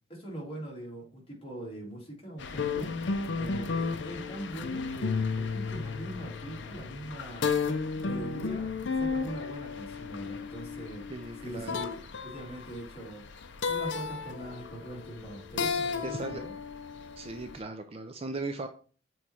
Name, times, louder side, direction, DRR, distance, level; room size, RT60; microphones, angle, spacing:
voice 1, 0.1-7.5 8.0-11.0 11.3-11.9 12.2-16.5, right 1 dB, 25° left, -2 dB, 2.1 m, -42 dB
sound 1, 2.4-17.6, left 5 dB, 60° left, 0.5 m, -34 dB
voice 2, 11.1-11.8 16.0-16.4 17.2-18.7, right 2 dB, 30° right, 7 dB, 0.4 m, -37 dB
7.4 x 3.1 x 4.2 m, 0.41 s
head